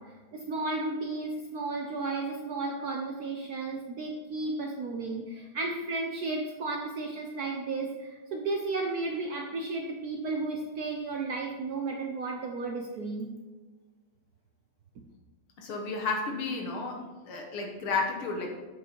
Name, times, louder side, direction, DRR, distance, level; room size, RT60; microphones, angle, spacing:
voice 1, 0.0-13.3, right 3 dB, 65° right, 1 dB, 0.9 m, -33 dB
voice 2, 15.6-18.6, left 3 dB, 75° left, 2 dB, 2.1 m, -32 dB
7.8 x 6.0 x 4.5 m, 1.3 s
omnidirectional pair, 2.4 m